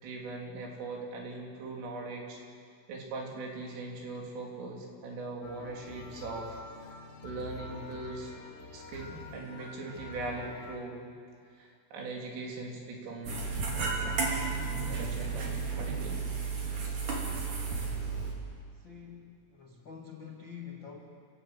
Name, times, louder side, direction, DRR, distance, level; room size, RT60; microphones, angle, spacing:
voice 1, 0.0-2.4 2.9-6.9 7.2-8.3 8.7-11.0 11.5-13.4 13.7-14.2 14.9-15.5 15.8-16.2, right 2 dB, 85° right, 0 dB, 6.0 m, -40 dB
sound 1, 5.4-10.8, left 3 dB, 45° left, 3.4 m, -46 dB
sound 2, 13.2-18.3, right 4 dB, 45° right, 4.3 m, -33 dB
voice 2, 17.7-18.1 18.8-19.3 19.6-21.0, left 7 dB, 75° left, 0 dB, 1.0 m, -47 dB
28.5 x 18.0 x 8.1 m, 2.3 s
omnidirectional pair, 5.7 m